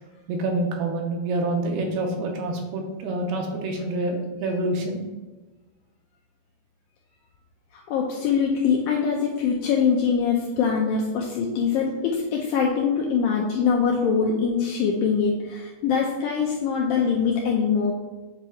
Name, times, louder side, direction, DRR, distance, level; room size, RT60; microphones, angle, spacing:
voice 1, 0.3-5.0, right 2 dB, 75° right, 2 dB, 2.6 m, -27 dB
voice 2, 7.9-17.9, left 6 dB, 85° left, -1 dB, 2.0 m, -23 dB
7.7 x 2.9 x 4.8 m, 1.2 s
omnidirectional pair, 4.6 m